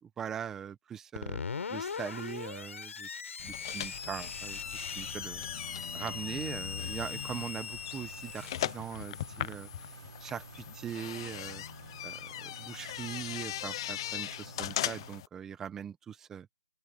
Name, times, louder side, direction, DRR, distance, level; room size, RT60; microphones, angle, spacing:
voice 1, 0.0-1.4 1.7-3.1 3.4-5.5 5.9-9.9 10.2-11.6 12.0-16.5, right 8 dB, 5° right, 1.0 m, -41 dB
Screech, 1.1-11.6, left 5 dB, 50° left, 5.7 m, -41 dB
sound 1, 3.4-15.3, left 13 dB, 15° left, 0.7 m, -40 dB
sound 2, 3.9-15.2, right 4 dB, 65° right, 7.5 m, -52 dB
open air
hypercardioid pair, 175°, 9 cm